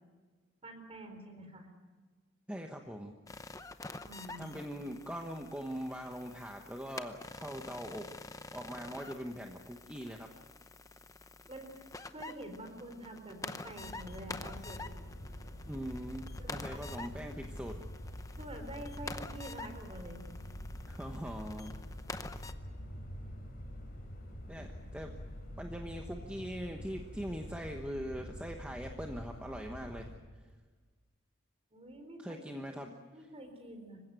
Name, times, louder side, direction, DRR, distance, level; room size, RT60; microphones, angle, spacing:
voice 1, 0.6-1.7 4.1-4.6 11.4-11.8 12.1-14.9 16.4-16.9 18.4-20.2 24.5-24.7 31.7-34.0, right 1 dB, 25° right, 6 dB, 4.0 m, -47 dB
voice 2, 2.5-3.1 4.4-8.1 8.5-10.3 15.6-17.8 20.9-21.8 24.5-25.1 25.6-30.1 32.2-33.3, equal, 5° right, 2 dB, 1.2 m, -42 dB
sound 1, 3.3-22.5, left 3 dB, 15° left, 0.8 m, -48 dB
sound 2, 13.8-30.2, equal, 45° left, 4.5 m, -46 dB
26.5 x 16.0 x 9.2 m, 1.4 s
head